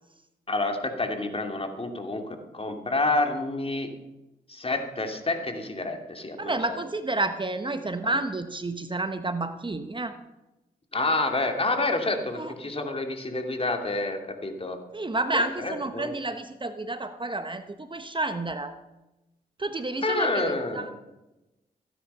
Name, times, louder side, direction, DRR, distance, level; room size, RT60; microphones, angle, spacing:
voice 1, 0.5-2.2 2.5-3.9 4.5-6.8 10.9-14.8 15.6-16.1 20.0-20.9, left 2 dB, 35° left, 4 dB, 2.7 m, -28 dB
voice 2, 6.4-10.1 12.3-12.5 14.9-18.7 19.6-20.9, right 2 dB, 30° right, 9 dB, 1.2 m, -30 dB
15.5 x 10.0 x 5.6 m, 0.99 s
supercardioid pair, 45°, 17 cm